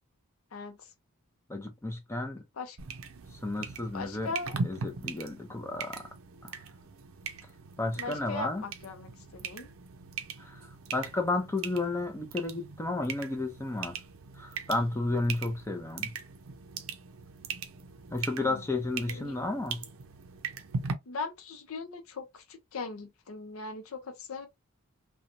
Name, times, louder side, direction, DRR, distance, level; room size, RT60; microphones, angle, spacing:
voice 1, 1.5-2.4 3.3-4.3 4.6-6.0 6.4-6.5 7.8-8.6 10.4-14.0 14.4-16.1 18.1-19.8, left 2 dB, 10° left, 0.5 m, -32 dB
sound 1, 2.8-20.9, right 5 dB, 70° right, 0.5 m, -40 dB
voice 2, 3.9-4.6 8.0-9.7 18.4-18.6 19.1-19.3 21.1-24.5, left 4 dB, 75° left, 0.6 m, -39 dB
2.9 x 2.2 x 2.5 m
head